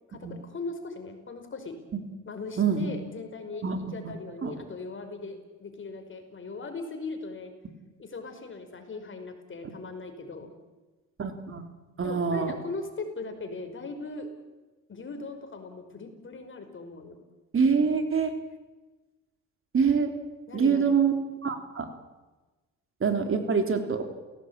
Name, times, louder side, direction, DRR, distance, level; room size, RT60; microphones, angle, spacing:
voice 1, 0.1-1.7 2.3-7.5 8.0-10.5 12.0-14.3 14.9-17.2 20.5-21.0, left 3 dB, 40° left, 6 dB, 5.3 m, -39 dB
voice 2, 2.6-2.9 3.6-4.1 4.4-4.6 11.2-11.6 12.0-12.5 17.5-18.3 19.7-20.1 20.5-21.1 21.4-21.9 23.0-24.0, right 6 dB, 45° right, 6 dB, 3.7 m, -25 dB
30.0 x 17.5 x 9.0 m, 1.2 s
cardioid pair, 90°, 30 cm